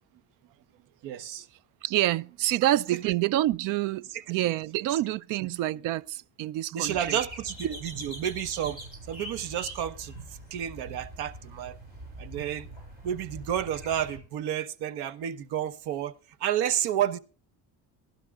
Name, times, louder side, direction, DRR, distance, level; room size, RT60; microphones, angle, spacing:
voice 1, 1.0-1.5 3.1-3.2 4.1-4.2 4.9-5.0 6.7-8.8 9.1-10.2 10.5-11.8 12.2-12.7 13.0-17.2, right 10 dB, 80° right, 1.1 m, -31 dB
voice 2, 1.8-7.2, right 14 dB, 55° right, 0.5 m, -27 dB
sound 1, 6.9-14.2, right 1 dB, 25° right, 5.6 m, -43 dB
20.0 x 11.5 x 2.4 m
cardioid pair, 175°, 38 cm